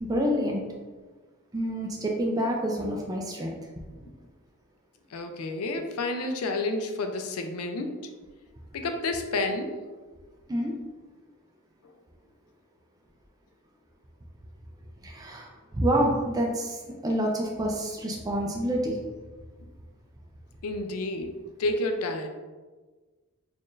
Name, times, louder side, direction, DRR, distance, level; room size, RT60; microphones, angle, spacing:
voice 1, 0.0-0.6 1.5-3.5 10.5-10.7 15.0-19.0, equal, 15° right, -1 dB, 0.4 m, -27 dB
voice 2, 5.1-7.9 8.7-9.7 20.6-21.3 21.6-22.3, left 2 dB, 80° left, 5 dB, 0.5 m, -30 dB
4.3 x 2.5 x 3.1 m, 1.3 s
head